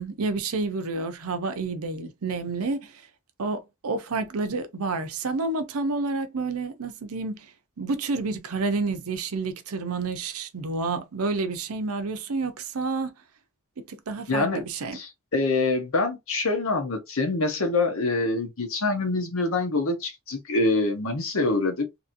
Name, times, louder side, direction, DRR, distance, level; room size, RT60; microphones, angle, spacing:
voice 1, 0.0-2.9 3.4-7.5 7.8-13.1 13.9-15.0, right 3 dB, 85° right, 0.6 m, -29 dB
voice 2, 14.3-14.6 14.9-21.9, left 2 dB, 70° left, 1.0 m, -25 dB
2.9 x 2.7 x 2.5 m
head